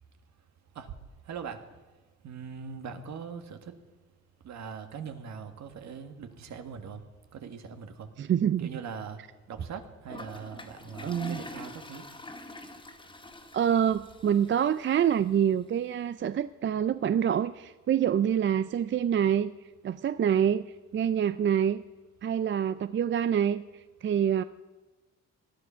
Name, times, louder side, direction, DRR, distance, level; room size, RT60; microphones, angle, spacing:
voice 1, 1.2-1.6 2.2-3.8 4.4-7.0 7.3-8.1 8.6-9.2 9.5-12.1, right 6 dB, 65° right, 8 dB, 1.7 m, -41 dB
voice 2, 8.2-8.7 11.0-11.4 13.5-19.5 19.8-20.7 20.9-21.8 22.2-24.4, right 9 dB, 40° right, 14 dB, 0.5 m, -26 dB
Toilet flush, 10.1-15.1, left 2 dB, 15° left, 2.0 m, -45 dB
19.0 x 12.0 x 5.6 m, 1.2 s
cardioid pair, 90°, 30 cm